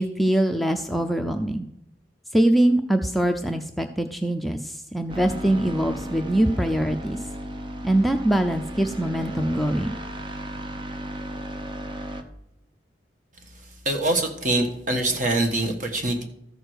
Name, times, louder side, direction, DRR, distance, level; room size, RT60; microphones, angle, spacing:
voice 1, 0.0-1.7 2.3-7.2 7.8-9.9, right 1 dB, ahead, 5 dB, 0.4 m, -23 dB
sound 1, 5.1-12.2, equal, 30° right, 0.8 m, -34 dB
voice 2, 13.8-16.2, right 2 dB, 45° right, 4 dB, 1.4 m, -24 dB
13.5 x 4.8 x 6.3 m, 0.81 s
head